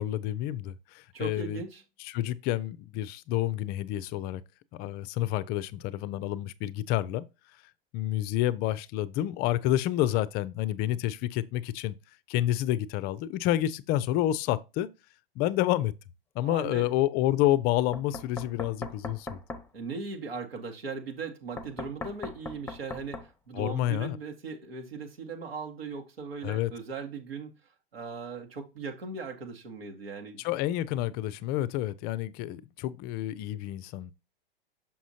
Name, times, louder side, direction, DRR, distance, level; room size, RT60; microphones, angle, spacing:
voice 1, 0.0-1.6 2.0-4.4 4.7-7.3 7.9-11.9 12.3-14.9 15.4-15.9 16.3-19.4 23.5-24.2 26.4-26.7 30.4-34.1, left 13 dB, 35° left, 0.4 m, -29 dB
voice 2, 1.1-1.8 16.4-16.9 19.7-27.5 27.9-30.5, right 4 dB, 85° right, 1.6 m, -38 dB
Knock, 17.9-19.7 21.6-23.3, left 2 dB, 10° left, 0.7 m, -39 dB
6.1 x 5.7 x 2.8 m
hypercardioid pair, 100°, 29 cm